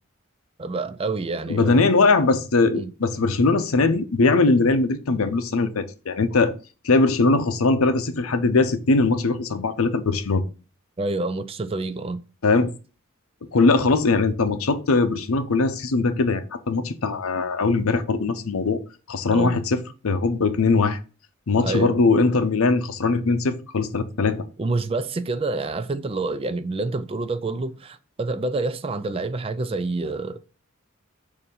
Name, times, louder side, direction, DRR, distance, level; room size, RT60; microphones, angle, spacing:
voice 1, 0.6-1.9 2.7-2.9 11.0-12.2 19.3-19.6 21.6-22.0 24.6-30.4, right 3 dB, 25° right, 0.4 m, -27 dB
voice 2, 1.5-6.5 6.8-10.4 12.4-12.7 13.5-18.8 19.1-21.0 21.5-24.4, left 3 dB, 85° left, 0.7 m, -21 dB
6.6 x 2.7 x 5.4 m
head